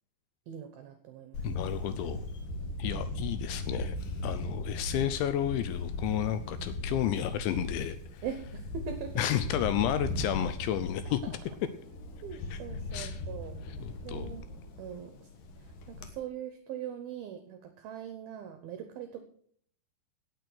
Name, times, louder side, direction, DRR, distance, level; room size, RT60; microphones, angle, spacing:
voice 1, 0.5-1.4 2.9-3.0 8.2-9.2 11.1-11.5 12.2-13.6 14.0-14.4 14.8-15.3 15.6-19.2, right 8 dB, 75° right, 7 dB, 2.3 m, -41 dB
Camera, 1.3-16.1, left 1 dB, 65° left, 2.4 m, -38 dB
voice 2, 1.4-2.2 2.8-4.0 4.2-8.2 9.2-11.4 12.5-12.6 12.9-13.2 13.7-14.3, left 11 dB, 80° left, 11 dB, 2.9 m, -32 dB
17.5 x 6.5 x 6.1 m, 0.62 s
omnidirectional pair, 5.5 m